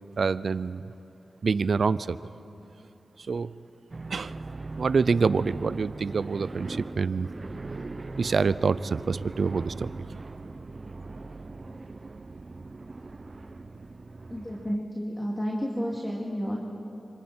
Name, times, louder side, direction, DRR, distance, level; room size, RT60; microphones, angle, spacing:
voice 1, 0.2-0.8 1.4-2.3 3.3-3.5 4.1-4.4 4.8-7.3 8.2-9.9, right 5 dB, 70° right, 17 dB, 0.5 m, -26 dB
sound 1, 3.9-14.8, right 3 dB, 45° right, 0.8 m, -40 dB
voice 2, 14.3-16.6, equal, 15° left, -2 dB, 2.9 m, -31 dB
26.5 x 25.5 x 4.5 m, 2.8 s
cardioid pair, 55°, 0 cm